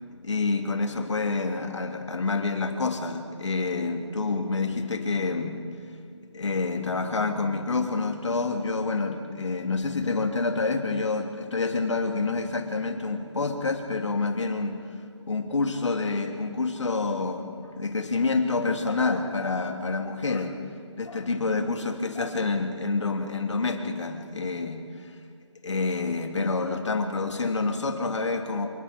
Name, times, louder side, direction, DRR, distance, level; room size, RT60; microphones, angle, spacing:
voice 1, 0.0-15.0 15.2-20.6 21.0-25.1 25.6-28.7, left 3 dB, 70° left, 5 dB, 2.6 m, -28 dB
26.5 x 20.0 x 5.1 m, 2.2 s
figure-of-eight pair, 160°, 16 cm